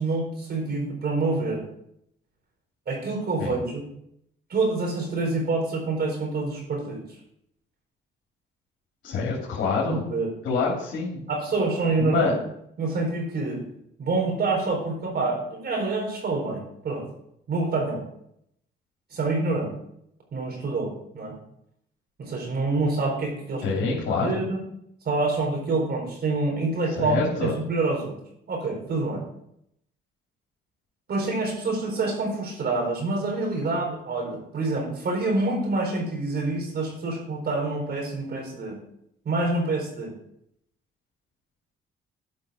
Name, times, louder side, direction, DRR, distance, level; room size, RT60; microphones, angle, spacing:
voice 1, 0.0-1.6 2.9-3.8 4.5-7.0 9.9-10.3 11.3-12.3 12.8-13.6 14.0-17.1 17.5-18.0 19.1-19.7 20.3-21.3 22.2-24.6 25.0-28.2 28.5-29.2 31.1-38.8 39.2-40.1, right 3 dB, 55° right, 1 dB, 4.3 m, -27 dB
voice 2, 9.0-10.0 10.4-11.2 12.0-12.3 23.6-24.4 27.0-27.5, left 4 dB, 70° left, -4 dB, 2.7 m, -26 dB
12.0 x 5.6 x 5.1 m, 0.74 s
cardioid pair, 90°, 20 cm